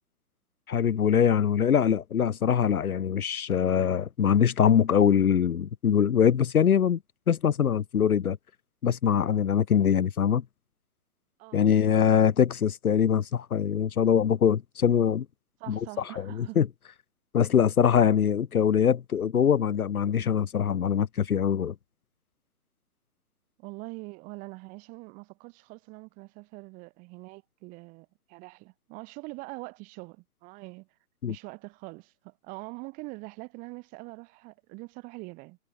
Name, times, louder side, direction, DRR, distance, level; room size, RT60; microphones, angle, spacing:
voice 1, 0.7-7.0 7.3-8.4 8.8-10.4 11.5-15.2 15.7-15.8 16.2-16.3 16.6-16.7 17.3-21.7 31.2-31.3, left 8 dB, 65° left, 1.3 m, -23 dB
voice 2, 11.4-11.8 15.6-16.6 23.6-30.9 31.3-35.6, right 27 dB, 15° right, 7.9 m, -43 dB
hypercardioid pair, 170°, 46 cm